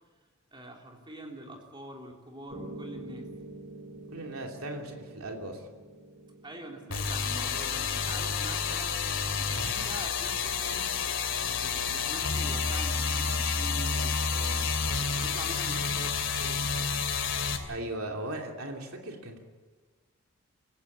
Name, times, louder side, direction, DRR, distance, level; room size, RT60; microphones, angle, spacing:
voice 1, 0.5-3.3 6.4-9.0 9.4-10.9 11.3-14.7 15.0-16.7, right 1 dB, 20° right, 1 dB, 3.4 m, -45 dB
Piano, 2.5-10.6, right 2 dB, 45° right, 2.5 m, -48 dB
voice 2, 4.1-5.7 17.7-19.4, right 1 dB, 90° right, 2 dB, 2.9 m, -37 dB
sound 1, 6.9-17.6, left 5 dB, 60° left, 2.9 m, -30 dB
26.0 x 16.0 x 8.6 m, 1.4 s
head